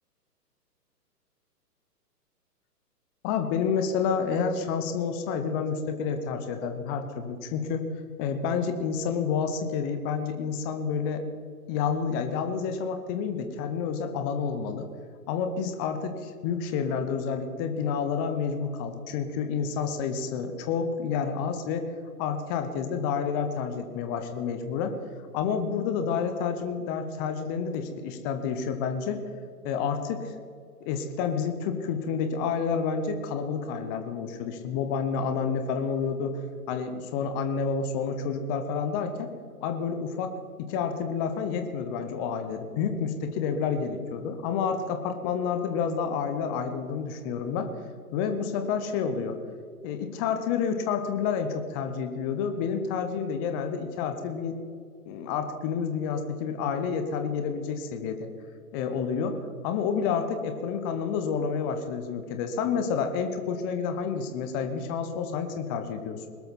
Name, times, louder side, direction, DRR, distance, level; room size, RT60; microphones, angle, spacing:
voice 1, 3.2-7.9 8.2-11.2 11.7-14.9 15.3-21.9 22.2-25.0 25.3-29.2 29.6-30.3 30.8-36.4 36.7-39.3 39.6-40.3 40.6-47.7 48.1-49.4 49.8-54.6 55.1-58.3 58.7-66.3, left 6 dB, 15° left, 7 dB, 0.7 m, -29 dB
21.0 x 12.5 x 4.2 m, 2.2 s
figure-of-eight pair, 130°, 47 cm